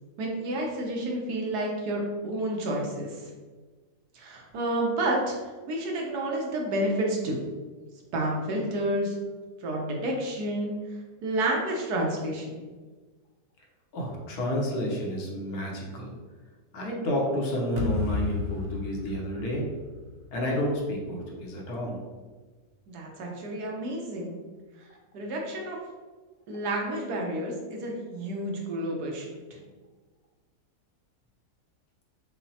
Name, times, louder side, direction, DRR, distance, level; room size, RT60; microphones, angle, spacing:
voice 1, 0.2-3.2 4.1-5.4 5.7-7.4 8.1-9.2 9.6-10.8 11.2-12.6 22.9-24.3 25.1-25.8 26.5-29.6, right 1 dB, 80° right, -1 dB, 1.3 m, -30 dB
voice 2, 13.9-16.2 16.7-19.7 20.3-22.0, equal, 75° left, -1 dB, 1.3 m, -30 dB
sound 1, 17.8-20.9, left 5 dB, 55° right, 0.6 m, -33 dB
5.7 x 2.1 x 2.7 m, 1.4 s
omnidirectional pair, 1.7 m